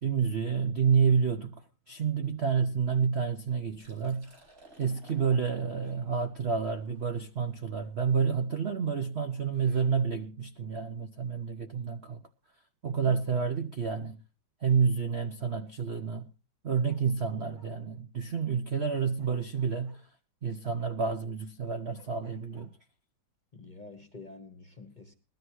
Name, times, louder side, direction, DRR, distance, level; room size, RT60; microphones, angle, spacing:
voice 1, 0.0-1.6 1.9-4.3 4.8-12.2 12.8-14.2 14.6-16.3 16.6-20.0 20.4-22.7, right 6 dB, 55° right, 0.7 m, -29 dB
Liquid, 3.7-9.4, right 2 dB, 40° right, 4.9 m, -59 dB
voice 2, 12.9-13.2 23.5-25.1, left 3 dB, 30° left, 1.0 m, -48 dB
Bark, 16.9-17.7 18.9-20.0 20.8-20.9 21.9-22.7, right 2 dB, 85° right, 4.3 m, -61 dB
20.5 x 13.5 x 3.1 m
omnidirectional pair, 2.3 m